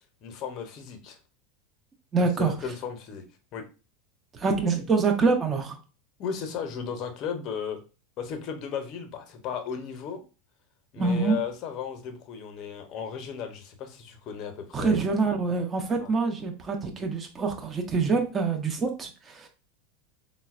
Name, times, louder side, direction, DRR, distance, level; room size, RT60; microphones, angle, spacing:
voice 1, 0.2-1.2 2.2-3.2 3.5-3.6 6.2-7.8 8.2-10.2 10.9-15.0 16.0-16.1, left 7 dB, 50° left, 7 dB, 0.6 m, -35 dB
voice 2, 2.1-2.5 4.3-5.8 11.0-11.4 14.7-19.5, right 4 dB, 25° right, 4 dB, 0.5 m, -25 dB
3.8 x 2.0 x 2.4 m, 0.33 s
hypercardioid pair, 105°, 0 cm